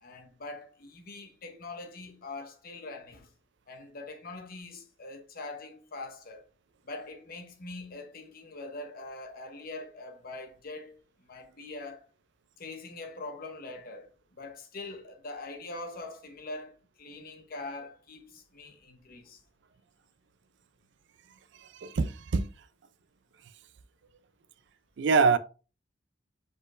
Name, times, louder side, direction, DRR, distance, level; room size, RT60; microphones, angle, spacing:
voice 1, 0.0-3.3 3.7-6.5 6.8-11.0 11.3-12.1 12.6-19.4, left 2 dB, 50° left, 0.9 m, -43 dB
voice 2, 21.8-22.5 25.0-25.4, right 4 dB, 65° right, 0.4 m, -24 dB
5.0 x 4.3 x 2.4 m
head